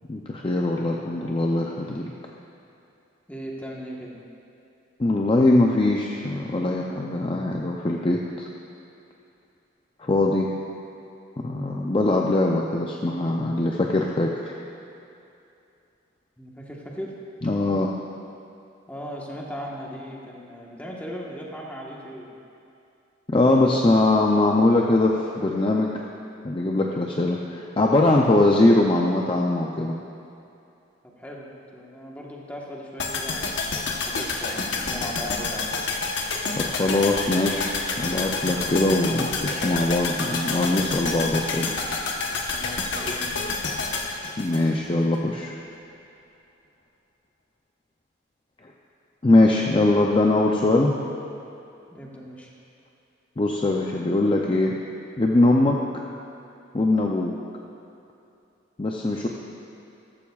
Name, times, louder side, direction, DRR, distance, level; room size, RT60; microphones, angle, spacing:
voice 1, 0.1-2.0 5.0-8.5 10.0-10.5 11.4-14.5 17.4-17.9 23.3-25.9 26.4-30.0 36.5-41.7 44.4-45.5 49.2-51.0 53.4-54.7 55.2-55.8 56.7-57.3 58.8-59.3, left 2 dB, 25° left, 0 dB, 0.5 m, -21 dB
voice 2, 3.3-4.2 16.4-17.2 18.9-22.3 31.0-35.7 42.5-43.4 51.9-52.5, equal, 10° left, -3 dB, 1.3 m, -38 dB
sound 1, 33.0-45.2 45.4-45.5, left 3 dB, 65° left, 1.0 m, -28 dB
14.0 x 14.0 x 2.4 m, 2.7 s
head